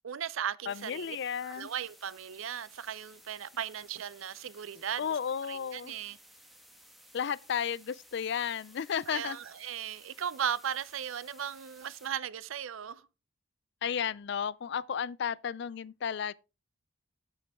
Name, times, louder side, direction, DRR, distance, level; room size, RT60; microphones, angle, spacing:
voice 1, 0.0-1.2 1.4-5.2 5.5-6.2 9.1-13.0, right 9 dB, 70° right, 0.5 m, -37 dB
voice 2, 0.7-1.7 5.0-6.0 7.1-9.4 13.8-16.3, left 7 dB, 55° left, 0.3 m, -33 dB
sound 1, 0.7-12.1, equal, ahead, 1.3 m, -58 dB
8.9 x 8.2 x 3.5 m
head